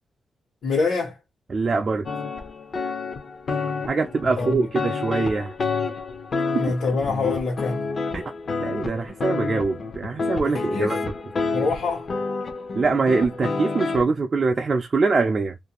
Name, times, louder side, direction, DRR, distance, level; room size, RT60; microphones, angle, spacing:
voice 1, 0.6-1.2 4.4-4.7 6.5-7.9 10.5-11.0 11.5-12.1, left 4 dB, 70° left, 1.2 m, -25 dB
voice 2, 1.5-2.1 3.9-5.5 6.5-6.6 8.1-8.3 8.6-11.0 12.7-15.6, right 4 dB, 40° right, 0.4 m, -23 dB
sound 1, 2.1-14.0, left 4 dB, 45° left, 0.6 m, -29 dB
2.5 x 2.2 x 2.9 m
wide cardioid pair, 120°, 0 cm